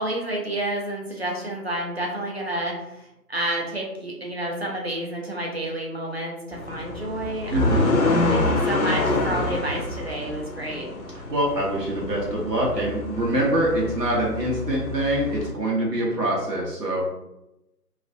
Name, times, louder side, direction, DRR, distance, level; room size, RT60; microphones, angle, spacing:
voice 1, 0.0-8.0 8.3-10.9, right 1 dB, 45° right, -1 dB, 0.5 m, -30 dB
sound 1, 6.5-15.5, left 2 dB, 60° left, 0.7 m, -27 dB
voice 2, 7.5-7.9 11.3-17.0, right 1 dB, 85° right, -3 dB, 1.0 m, -24 dB
3.0 x 2.1 x 2.5 m, 0.89 s
figure-of-eight pair, 155°, 48 cm